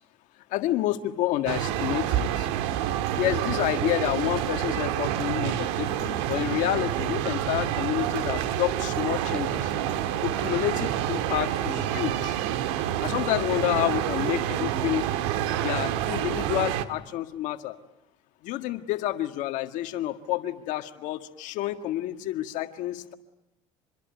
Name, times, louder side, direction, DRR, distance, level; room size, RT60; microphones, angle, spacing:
voice 1, 0.5-2.5 3.2-9.7 10.2-12.4 13.0-15.1 15.6-17.8 18.4-23.1, left 14 dB, 65° left, 7 dB, 1.8 m, -29 dB
sound 1, 1.5-16.8, right 11 dB, 85° right, 1.8 m, -28 dB
26.5 x 22.0 x 9.4 m, 0.84 s
supercardioid pair, 105°, 14 cm